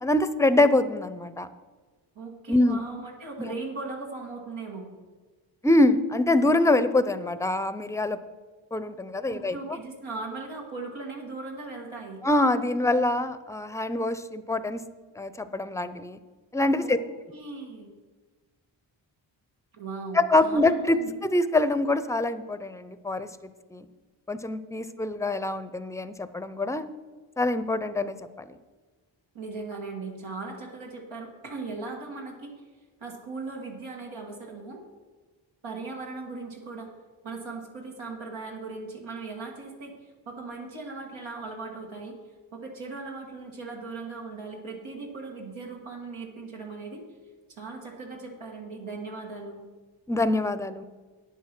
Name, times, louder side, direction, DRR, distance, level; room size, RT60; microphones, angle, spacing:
voice 1, 0.0-1.5 2.5-2.8 3.4-3.5 5.6-8.2 8.7-9.6 12.2-14.8 15.2-16.2 16.5-17.0 20.1-23.3 23.7-23.9 24.3-26.9 27.4-28.2 50.1-50.8, left 2 dB, 5° left, 13 dB, 0.6 m, -24 dB
voice 2, 2.2-4.9 9.3-12.2 16.8-17.0 17.3-17.9 19.7-21.2 25.0-25.1 29.3-32.5 33.0-34.8 35.6-36.9 37.2-42.1 42.5-47.0 47.6-49.6, right 3 dB, 85° right, -1 dB, 1.8 m, -38 dB
9.2 x 7.2 x 6.0 m, 1.3 s
cardioid pair, 60°, 46 cm